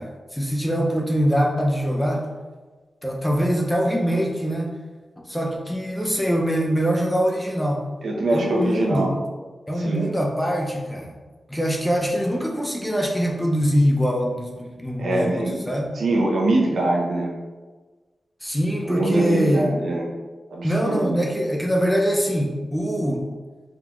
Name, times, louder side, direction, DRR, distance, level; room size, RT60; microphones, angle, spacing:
voice 1, 0.0-2.3 3.0-4.7 5.3-7.9 8.3-9.1 9.7-11.1 11.5-16.0 18.4-19.7 20.6-23.3, equal, 5° left, 0 dB, 0.5 m, -23 dB
voice 2, 8.0-9.2 9.8-10.1 15.0-15.6 16.0-17.3 18.8-20.1 20.5-21.2, right 2 dB, 80° right, -1 dB, 0.8 m, -23 dB
3.6 x 3.6 x 3.0 m, 1.3 s
wide cardioid pair, 160°, 0 cm